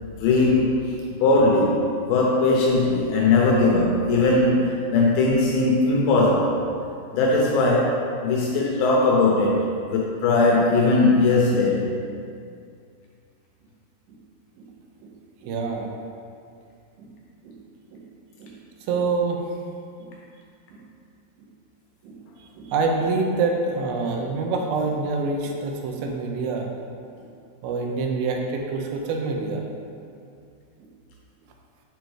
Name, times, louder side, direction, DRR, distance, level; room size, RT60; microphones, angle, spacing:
voice 1, 0.0-6.6 7.1-11.9, left 2 dB, 80° left, -2 dB, 2.4 m, -20 dB
voice 2, 15.4-15.9 17.0-17.1 17.4-17.6 17.9-18.1 18.4-18.6 18.9-19.4 20.0-20.2 20.7-20.9 22.0-26.7 27.2-27.3 27.6-29.7 30.8-30.9, right 4 dB, 85° right, 1 dB, 2.5 m, -26 dB
7.2 x 4.4 x 3.2 m, 2.4 s
omnidirectional pair, 4.2 m